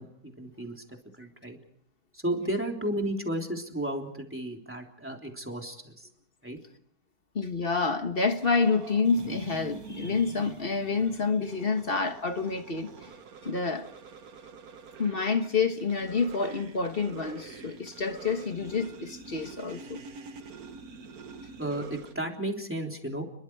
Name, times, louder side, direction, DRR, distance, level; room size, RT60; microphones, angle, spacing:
voice 1, 0.0-1.6 2.1-6.1 6.4-6.6 21.6-23.2, right 1 dB, 10° right, 3.5 m, -33 dB
voice 2, 7.3-13.1 13.4-13.9 15.0-20.0, left 4 dB, 40° left, 1.6 m, -28 dB
sound 1, 8.1-22.1, right 5 dB, 70° right, 1.8 m, -45 dB
30.0 x 22.5 x 4.8 m
omnidirectional pair, 1.6 m